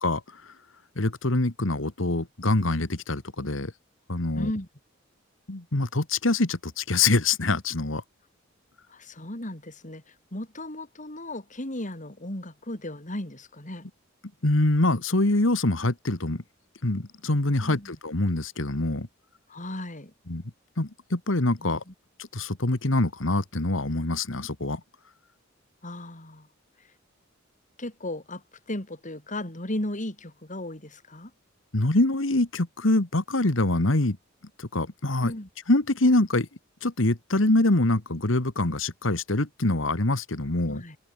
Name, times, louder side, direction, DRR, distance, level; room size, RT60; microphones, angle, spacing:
voice 1, 0.0-0.5 1.0-3.7 4.1-4.5 5.5-8.0 14.4-16.4 16.8-19.1 20.3-20.4 20.8-21.8 22.2-24.8 31.7-34.2 34.6-35.3 35.7-36.5 36.8-40.8, left 2 dB, 70° left, 1.9 m, -25 dB
voice 2, 4.3-4.7 8.9-13.9 17.6-17.9 19.5-20.1 21.6-21.9 25.8-26.5 26.8-26.9 27.8-31.3 35.2-35.5 40.7-41.0, left 1 dB, 40° left, 4.4 m, -36 dB
head